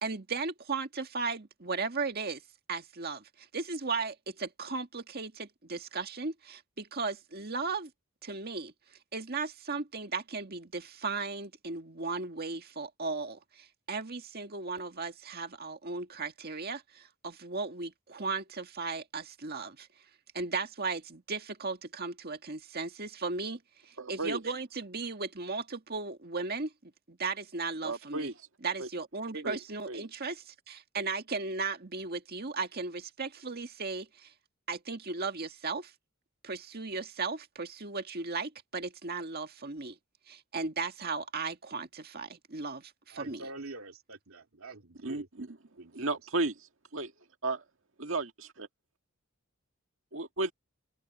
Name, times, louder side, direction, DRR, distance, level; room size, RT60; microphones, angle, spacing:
voice 1, 0.0-2.4 2.7-7.9 8.2-8.7 9.1-19.9 20.3-28.3 28.6-34.3 34.7-35.9 36.4-40.0 40.3-43.4, right 4 dB, 50° right, 1.9 m, -36 dB
voice 2, 24.0-24.4 27.8-28.3 28.8-28.9 29.4-29.6 29.9-30.0 45.0-45.5 45.9-46.5 46.9-47.1 47.4-47.6 48.0-48.7 50.1-50.5, right 2 dB, 65° right, 2.1 m, -33 dB
voice 3, 43.1-46.2, right 2 dB, 80° right, 2.7 m, -46 dB
open air
head